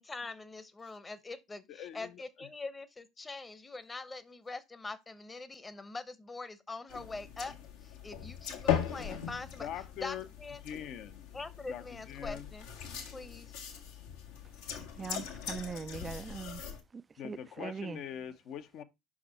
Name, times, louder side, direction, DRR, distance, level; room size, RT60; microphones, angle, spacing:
voice 1, 0.0-7.5 7.8-9.7 10.0-10.6 11.3-12.7 13.1-13.5, left 3 dB, 20° left, 1.0 m, -43 dB
voice 2, 1.7-2.2 9.6-10.3 10.6-11.2 11.7-12.5 17.2-18.8, left 9 dB, 55° left, 0.9 m, -42 dB
sound 1, 6.9-16.8, left 9 dB, 75° left, 1.6 m, -39 dB
voice 3, 15.0-16.6 17.2-18.0, right 5 dB, 30° right, 0.4 m, -40 dB
5.6 x 4.9 x 4.2 m
hypercardioid pair, 70°, 0 cm